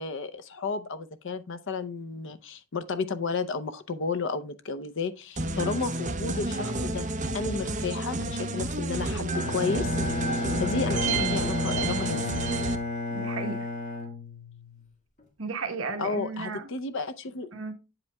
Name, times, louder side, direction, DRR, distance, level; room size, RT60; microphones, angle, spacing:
voice 1, 0.0-10.0 10.2-12.5 16.0-17.5, left 4 dB, 65° left, 0.7 m, -32 dB
sound 1, 5.4-12.8, right 2 dB, 40° right, 0.9 m, -30 dB
Bowed string instrument, 9.3-14.8, left 3 dB, 35° left, 1.6 m, -32 dB
voice 2, 13.1-13.7 15.4-16.7 17.5-17.7, right 4 dB, 70° right, 1.1 m, -34 dB
8.4 x 8.0 x 2.3 m
head